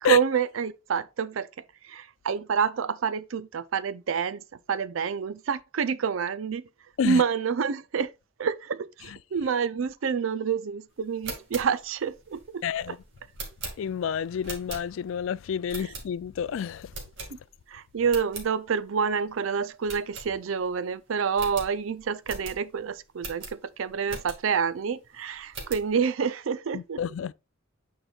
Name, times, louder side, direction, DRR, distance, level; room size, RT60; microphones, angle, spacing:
voice 1, 0.0-6.6 7.0-8.1 8.4-12.9 17.7-27.0, right 6 dB, 90° right, 0.5 m, -28 dB
sound 1, 11.1-15.2 15.7-16.4 16.9-17.7 18.0-18.5 18.9-19.0 19.3-19.4 19.8-20.7 21.0-21.1 21.3-24.6 25.1-25.9, right 3 dB, 75° right, 2.1 m, -41 dB
voice 2, 12.6-13.0 13.8-16.9 26.7-27.3, left 8 dB, 80° left, 0.3 m, -29 dB
9.0 x 4.8 x 2.4 m
head